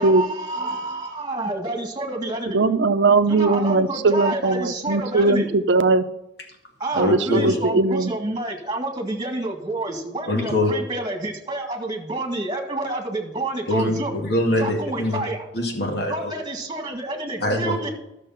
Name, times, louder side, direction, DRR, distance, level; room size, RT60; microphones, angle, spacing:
voice 1, 0.0-2.6 3.3-5.5 6.8-14.1 14.6-15.4 16.1-17.9, right 2 dB, 25° right, 3 dB, 1.8 m, -29 dB
voice 2, 2.5-6.0 7.0-8.1, right 3 dB, 90° right, 11 dB, 0.6 m, -19 dB
voice 3, 6.9-7.6 10.3-10.7 13.7-15.2 15.5-16.3 17.4-17.9, left 1 dB, 65° left, 2 dB, 2.2 m, -23 dB
12.5 x 6.6 x 5.8 m, 0.89 s
head